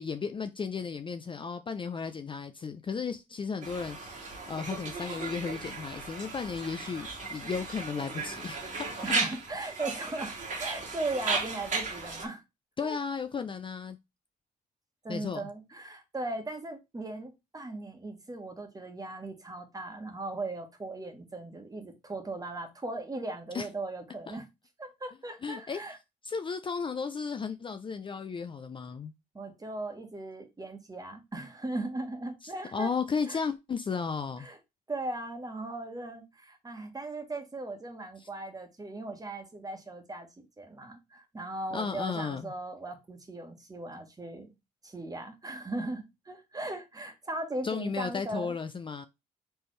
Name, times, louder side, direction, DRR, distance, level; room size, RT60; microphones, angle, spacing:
voice 1, 0.0-9.2 12.8-14.0 15.1-15.5 23.5-23.7 24.3-24.4 25.4-25.8 26.2-29.1 32.4-34.5 41.7-42.5 47.6-49.1, left 5 dB, 30° left, 0.4 m, -34 dB
Conversation, 3.6-12.3, right 4 dB, 50° right, 1.6 m, -35 dB
voice 2, 9.0-12.4 12.8-13.0 15.0-24.5 24.8-26.0 29.3-32.9 33.3-33.4 34.4-34.6 34.9-44.5 44.8-48.5, right 2 dB, 20° right, 1.4 m, -38 dB
4.3 x 3.4 x 3.2 m
cardioid pair, 75°, 17 cm